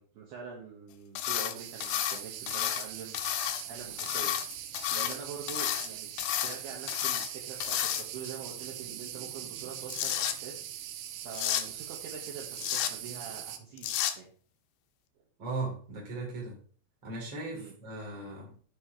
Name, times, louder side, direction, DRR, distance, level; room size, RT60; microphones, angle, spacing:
voice 1, 0.0-4.4 4.9-6.1 6.4-10.7 11.2-14.3 17.5-17.7, right 6 dB, 70° right, -1 dB, 2.9 m, -45 dB
sound 1, 1.1-1.5 1.8-2.9 3.1-3.6 4.0-5.2 5.5-5.9 6.2-6.6 6.9-7.3 7.6-8.3 9.6-10.3 11.3-11.6 12.5-12.9 13.8-14.1, left 12 dB, 85° left, 2.5 m, -31 dB
sound 2, 1.5-13.6, right 11 dB, 85° right, 3.2 m, -42 dB
voice 2, 15.4-16.6 17.0-18.5, right 3 dB, 25° right, -2 dB, 3.1 m, -37 dB
11.5 x 5.5 x 3.1 m, 0.43 s
omnidirectional pair, 5.6 m